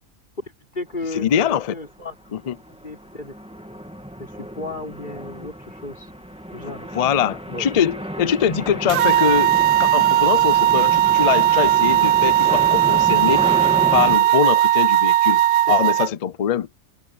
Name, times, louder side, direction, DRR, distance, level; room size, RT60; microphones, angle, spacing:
voice 1, 0.4-2.4 2.8-3.6 4.2-6.1 6.5-6.8 7.5-7.7 14.2-14.3 15.7-15.9, left 2 dB, 35° left, 3.9 m, -35 dB
voice 2, 1.1-1.7 2.3-2.6 6.6-13.4 13.9-15.4 15.7-16.7, left 8 dB, 80° left, 0.3 m, -23 dB
sound 1, 1.2-1.4 1.8-14.2, equal, 5° right, 2.4 m, -32 dB
sound 2, 8.9-16.1, right 12 dB, 70° right, 0.9 m, -17 dB
omnidirectional pair, 1.5 m